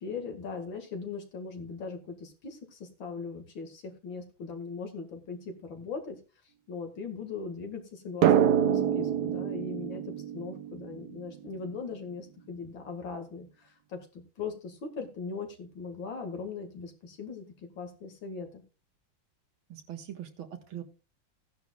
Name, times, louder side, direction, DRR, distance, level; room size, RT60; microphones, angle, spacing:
voice 1, 0.0-6.2 6.7-17.4 17.8-18.6, left 5 dB, 70° left, 4 dB, 2.8 m, -39 dB
Drum, 8.2-11.6, right 9 dB, 65° right, 1.1 m, -26 dB
voice 2, 19.7-20.8, right 10 dB, 90° right, 6 dB, 2.3 m, -41 dB
16.0 x 10.5 x 2.4 m, 0.31 s
omnidirectional pair, 2.2 m